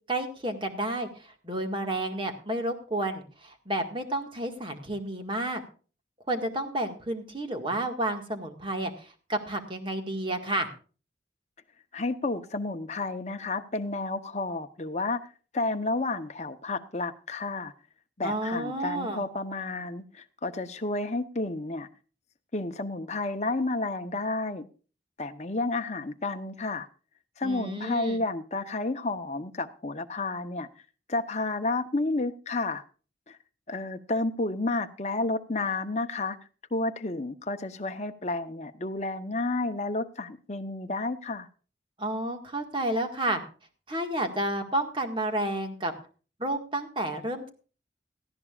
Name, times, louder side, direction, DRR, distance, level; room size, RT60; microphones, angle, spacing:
voice 1, 0.1-5.6 6.3-10.7 18.2-19.3 27.4-28.2 42.0-43.4 43.9-45.9 46.4-47.5, right 1 dB, 25° right, 1.8 m, -31 dB
voice 2, 11.9-15.3 15.5-17.7 18.2-21.9 22.5-24.6 25.2-26.9 27.4-30.7 31.1-32.8 33.3-33.4 33.7-36.4 36.7-41.5, left 2 dB, 35° left, 0.9 m, -31 dB
18.0 x 14.5 x 2.5 m
head